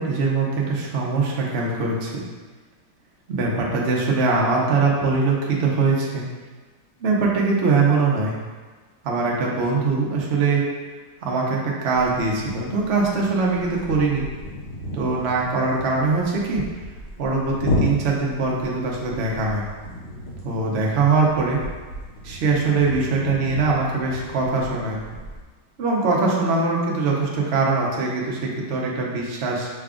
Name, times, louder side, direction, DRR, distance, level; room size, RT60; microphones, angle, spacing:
voice 1, 0.0-2.2 3.3-6.2 7.0-8.3 9.0-10.6 11.2-14.3 14.9-16.6 17.2-19.6 20.4-21.6 22.2-25.0 25.8-29.7, right 4 dB, 55° right, -3 dB, 0.7 m, -22 dB
sound 1, 11.9-25.4, left 1 dB, 75° left, 1.6 m, -33 dB
5.8 x 2.3 x 3.6 m, 1.4 s
omnidirectional pair, 2.0 m